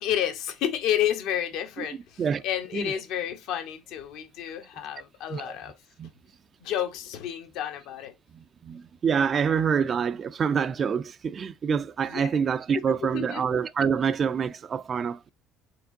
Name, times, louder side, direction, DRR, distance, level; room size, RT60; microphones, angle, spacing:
voice 1, 0.0-5.8 6.6-8.1 12.1-12.4 12.7-13.4, left 10 dB, 70° left, 1.0 m, -30 dB
voice 2, 8.6-15.3, right 6 dB, 40° right, 0.4 m, -26 dB
4.5 x 3.6 x 2.6 m
hypercardioid pair, 75°, 0 cm